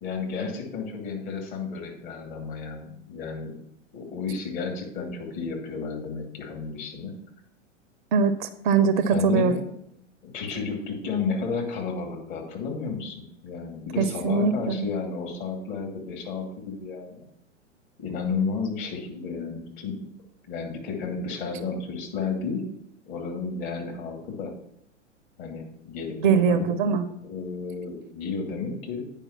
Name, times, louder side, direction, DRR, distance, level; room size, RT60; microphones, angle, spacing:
voice 1, 0.0-3.5 3.9-7.1 9.1-9.6 10.2-17.3 18.0-20.1 20.5-22.6 23.1-24.5 25.4-26.7 27.2-29.0, left 5 dB, 45° left, 1 dB, 2.7 m, -32 dB
voice 2, 8.1-9.6 14.0-14.9 26.2-27.0, right 5 dB, 40° right, 11 dB, 0.7 m, -22 dB
9.2 x 5.5 x 5.8 m, 0.74 s
figure-of-eight pair, 100°, 37 cm